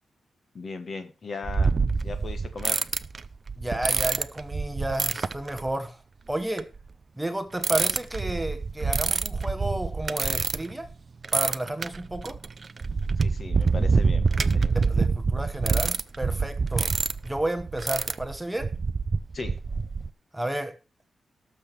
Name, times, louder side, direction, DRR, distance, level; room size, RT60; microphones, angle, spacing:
voice 1, 0.5-1.7 2.0-2.8 13.2-14.7 19.3-19.6, left 4 dB, 40° left, 8 dB, 1.4 m, -37 dB
sound 1, 1.4-5.7 6.6-6.8 7.6-10.9 11.2-20.1, right 4 dB, 35° right, 0.4 m, -26 dB
voice 2, 3.6-6.0 6.3-6.7 7.1-10.9 11.3-12.4 14.7-16.9 17.2-18.7 20.3-20.8, right 1 dB, 5° right, 7 dB, 1.1 m, -31 dB
18.0 x 6.7 x 3.4 m, 0.31 s
wide cardioid pair, 165°, 0 cm